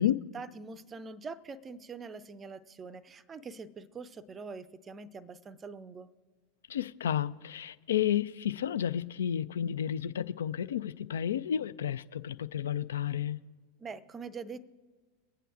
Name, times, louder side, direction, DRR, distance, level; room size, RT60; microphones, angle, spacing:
voice 1, 0.3-6.1 13.8-14.6, right 4 dB, 20° right, 0.5 m, -44 dB
voice 2, 6.7-13.4, left 10 dB, 65° left, 0.3 m, -31 dB
23.0 x 8.9 x 2.4 m
figure-of-eight pair, 85°, 0 cm